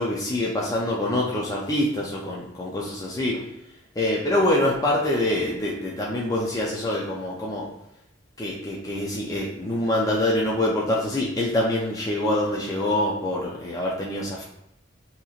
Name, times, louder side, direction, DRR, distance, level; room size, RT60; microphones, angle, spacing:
voice 1, 0.0-3.4 4.0-7.7 8.4-14.4, left 1 dB, 15° left, -3 dB, 0.4 m, -25 dB
4.0 x 2.8 x 2.4 m, 0.85 s
head